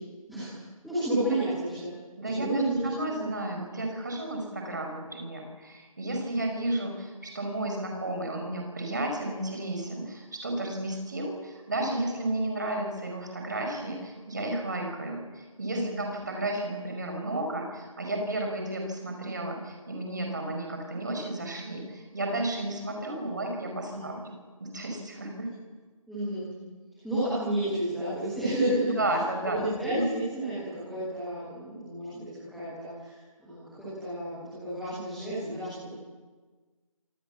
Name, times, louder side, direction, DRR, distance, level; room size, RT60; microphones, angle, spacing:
voice 1, 0.3-1.9 2.2-3.3 15.7-16.0 23.9-24.0 26.1-26.4 27.0-29.0 29.4-36.0, right 1 dB, ahead, -16 dB, 0.7 m, -31 dB
voice 2, 2.2-24.3 24.6-25.5 29.0-30.1, right 1 dB, 30° right, 3 dB, 5.6 m, -33 dB
25.0 x 25.0 x 7.3 m, 1.4 s
figure-of-eight pair, 180°, 18 cm